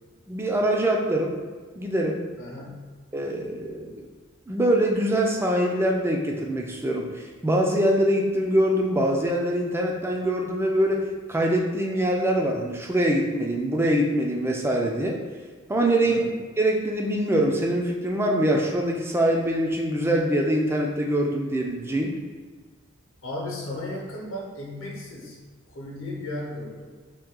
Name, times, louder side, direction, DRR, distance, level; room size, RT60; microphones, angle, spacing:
voice 1, 0.3-1.4 1.8-2.2 3.1-4.1 4.5-11.0 11.3-15.2 15.7-16.2 16.6-22.2, right 1 dB, 10° right, 0 dB, 0.3 m, -24 dB
voice 2, 2.4-2.9 16.0-16.3 23.2-25.4 25.7-27.0, left 1 dB, 65° left, -3 dB, 0.9 m, -35 dB
2.9 x 2.7 x 3.6 m, 1.4 s
head